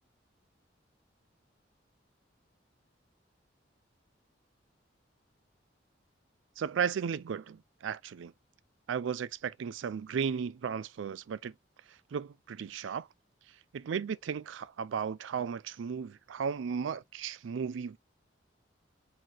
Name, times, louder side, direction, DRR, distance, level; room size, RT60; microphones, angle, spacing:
voice 1, 6.6-8.3 8.9-11.5 12.1-13.1 13.7-18.0, right 7 dB, 90° right, 0.4 m, -35 dB
4.2 x 3.9 x 3.0 m
head